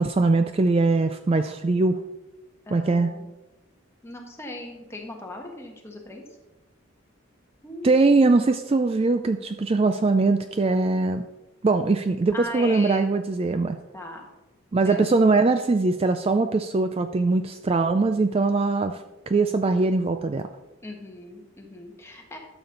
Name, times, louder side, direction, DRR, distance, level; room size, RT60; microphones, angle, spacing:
voice 1, 0.0-2.0 2.7-3.1 7.8-11.3 11.6-13.8 14.7-20.5, right 3 dB, 30° right, 8 dB, 0.3 m, -21 dB
voice 2, 2.7-3.3 4.0-6.2 7.6-8.0 12.3-13.1 13.9-14.3 14.8-15.1 20.8-22.4, left 1 dB, 10° left, 1 dB, 1.3 m, -38 dB
12.5 x 7.0 x 3.9 m, 1.1 s
head